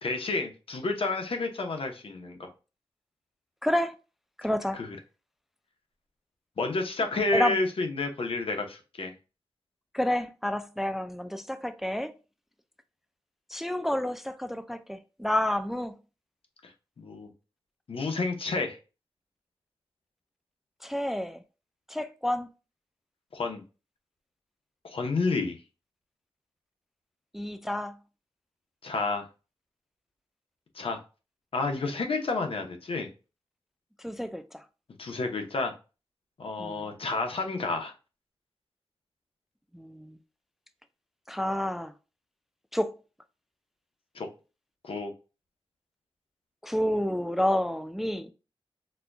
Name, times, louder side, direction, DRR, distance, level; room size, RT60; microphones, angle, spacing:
voice 1, 0.0-2.5 4.7-5.0 6.6-9.1 17.0-17.3 17.9-18.8 23.3-23.6 24.8-25.6 28.8-29.3 30.7-31.0 31.5-33.1 35.0-35.7 36.4-37.9 44.1-44.3 44.8-45.1, left 3 dB, 70° left, 0.8 m, -30 dB
voice 2, 3.6-4.0 4.4-4.8 7.3-7.6 9.9-12.1 13.5-16.0 20.8-21.4 21.9-22.5 27.3-28.0 34.0-34.6 36.6-36.9 39.7-40.2 41.3-41.9 42.7-42.9 46.6-48.3, left 1 dB, 5° right, 0.4 m, -29 dB
4.2 x 2.2 x 2.6 m
wide cardioid pair, 75°, 10 cm